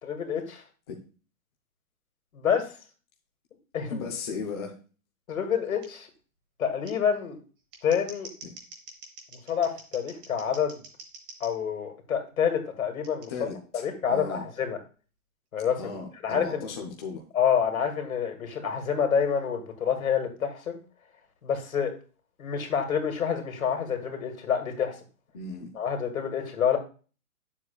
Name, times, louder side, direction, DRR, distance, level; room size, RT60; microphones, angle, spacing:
voice 1, 0.0-0.6 2.3-2.7 3.7-4.1 5.3-6.1 6.6-7.4 7.8-8.3 9.5-10.8 11.4-13.5 13.7-14.8 15.5-15.9 16.2-16.7 17.3-20.8 21.4-21.9 22.4-25.0 25.8-26.8, left 7 dB, 75° left, 2.4 m, -27 dB
voice 2, 3.9-4.8 8.4-8.5 13.3-14.5 15.8-17.2 25.3-25.7, left 4 dB, 20° left, 0.7 m, -36 dB
Scissors, 5.8-5.9 6.8-6.9 7.6-11.5 13.0-13.3, right 3 dB, 20° right, 1.1 m, -46 dB
8.6 x 7.1 x 2.4 m
hypercardioid pair, 160°, 42 cm